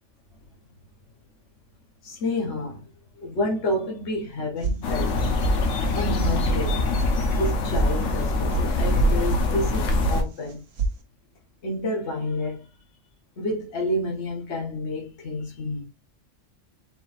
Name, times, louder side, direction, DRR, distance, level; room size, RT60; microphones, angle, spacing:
voice 1, 2.0-2.8 3.2-5.4 5.9-6.8 7.4-10.6 11.6-12.7 13.4-15.8, left 1 dB, 65° left, 1.3 m, -29 dB
sound 1, 4.6-5.1 5.4-5.9 6.2-6.3 6.7-7.1 7.4-7.9 8.2-8.6 9.0-9.4 9.7-10.2 10.4-10.9, right 4 dB, 90° right, 1.2 m, -27 dB
sound 2, 4.8-10.2, left 1 dB, 85° left, 1.1 m, -23 dB
4.3 x 4.0 x 2.5 m
omnidirectional pair, 1.3 m